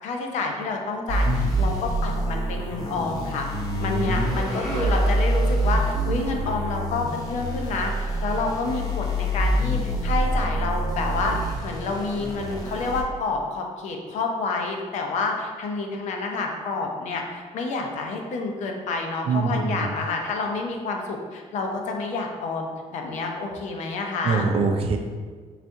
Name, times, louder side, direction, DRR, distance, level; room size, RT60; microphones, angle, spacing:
voice 1, 0.0-3.5 3.8-24.5, left 3 dB, 70° left, 2 dB, 0.7 m, -29 dB
sound 1, 1.1-13.0, right 1 dB, 30° left, 0.8 m, -26 dB
voice 2, 1.2-1.6 3.5-4.4 19.2-19.9 24.2-25.0, right 4 dB, 50° right, 4 dB, 0.5 m, -25 dB
sound 2, 3.9-8.1, left 1 dB, 5° left, 1.2 m, -39 dB
4.0 x 2.7 x 4.5 m, 1.5 s
cardioid pair, 155°, 13 cm